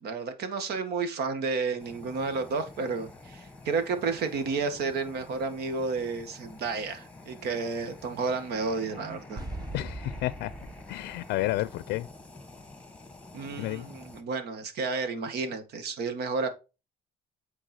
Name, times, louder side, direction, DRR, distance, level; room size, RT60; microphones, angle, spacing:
voice 1, 0.0-9.4 13.3-16.5, right 4 dB, 75° right, 1.8 m, -31 dB
Fire, 1.8-14.2, left 2 dB, 5° left, 1.5 m, -48 dB
sound 1, 9.4-12.3, right 2 dB, 25° right, 1.1 m, -41 dB
voice 2, 9.7-10.5 10.9-12.1 13.5-13.9, left 16 dB, 80° left, 0.4 m, -31 dB
8.8 x 4.6 x 4.4 m
cardioid pair, 110°, 17 cm